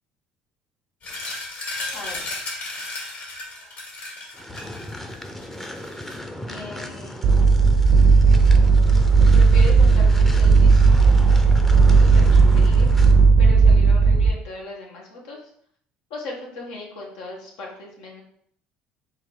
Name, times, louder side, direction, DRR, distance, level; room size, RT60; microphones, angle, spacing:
sound 1, 1.0-6.2, left 2 dB, 55° left, 2.0 m, -34 dB
voice 1, 1.9-2.7 6.5-7.2 9.3-11.0 12.0-12.9 13.4-15.4 16.1-18.2, left 2 dB, 80° left, -2 dB, 1.4 m, -38 dB
sound 2, 4.3-13.3, left 1 dB, 10° left, 0.6 m, -36 dB
sound 3, 7.2-14.3, right 4 dB, 70° right, 0.6 m, -14 dB
3.7 x 2.8 x 4.7 m, 0.63 s
supercardioid pair, 90°, 4 cm